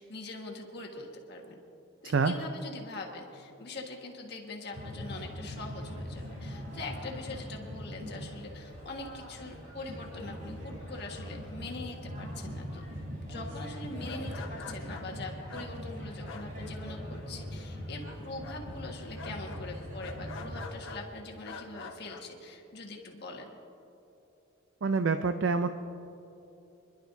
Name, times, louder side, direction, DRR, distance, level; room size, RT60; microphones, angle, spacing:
voice 1, 0.0-1.6 2.0-12.9 13.2-23.5, left 2 dB, 50° left, 0 dB, 1.5 m, -43 dB
sound 1, 4.7-20.7, equal, 35° right, 3.8 m, -41 dB
sound 2, 14.0-17.2 17.5-18.1 18.4-21.0 21.4-22.3, left 4 dB, 65° left, 1.0 m, -46 dB
voice 2, 24.8-25.7, right 4 dB, 60° right, 9 dB, 0.4 m, -26 dB
26.5 x 11.5 x 2.7 m, 2.9 s
head